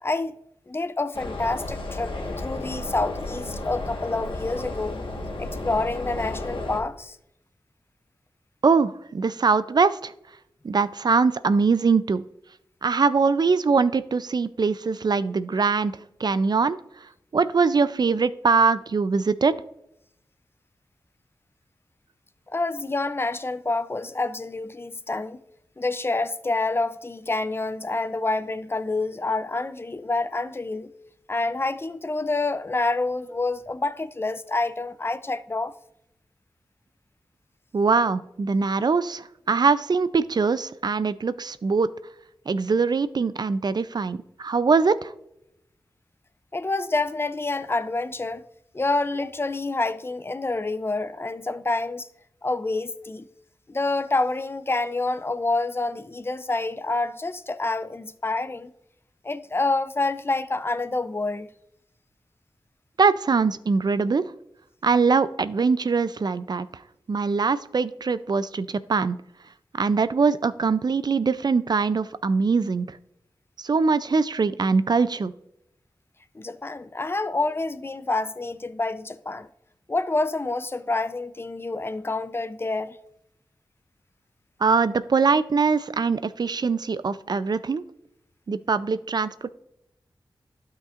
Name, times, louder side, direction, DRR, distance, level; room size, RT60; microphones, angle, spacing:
voice 1, 0.0-0.4 0.7-5.0 5.4-7.2 22.5-25.4 25.8-30.9 31.3-35.7 46.5-48.4 48.7-52.1 52.4-53.3 53.7-58.7 59.2-61.5 76.3-79.5 79.9-83.0, left 3 dB, 25° left, 0.5 m, -27 dB
sound 1, 1.1-6.8, left 2 dB, 80° left, 1.4 m, -33 dB
voice 2, 8.6-10.1 10.6-12.2 12.8-16.8 17.3-19.5 37.7-41.9 42.5-45.1 63.0-64.3 64.8-66.8 67.1-69.2 69.7-73.0 73.6-75.3 84.6-87.8 88.5-89.5, right 4 dB, 55° right, 0.4 m, -22 dB
12.0 x 5.8 x 2.5 m
cardioid pair, 55°, 9 cm